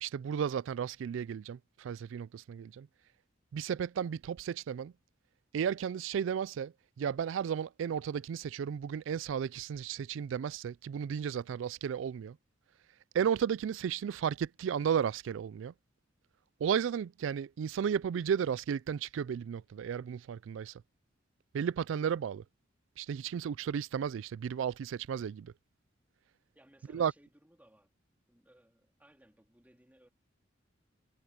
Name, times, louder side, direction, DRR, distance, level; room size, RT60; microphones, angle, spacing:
voice 1, 0.0-2.9 3.5-4.9 5.5-12.4 13.1-15.7 16.6-20.7 21.5-22.4 23.0-25.5 26.9-27.1, right 8 dB, 75° right, 0.3 m, -34 dB
voice 2, 26.5-27.9 28.3-30.1, right 1 dB, 10° right, 2.6 m, -63 dB
head